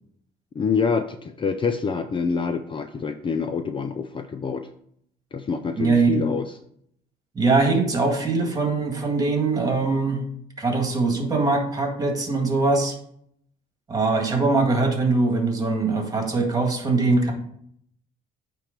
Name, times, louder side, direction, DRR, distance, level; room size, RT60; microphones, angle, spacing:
voice 1, 0.5-4.7 5.3-6.5, left 5 dB, 30° left, 8 dB, 0.4 m, -26 dB
voice 2, 5.8-6.2 7.4-10.2 10.6-12.9 13.9-17.3, right 3 dB, 20° right, 3 dB, 1.8 m, -22 dB
9.0 x 3.3 x 5.1 m, 0.68 s
cardioid pair, 110°, 17 cm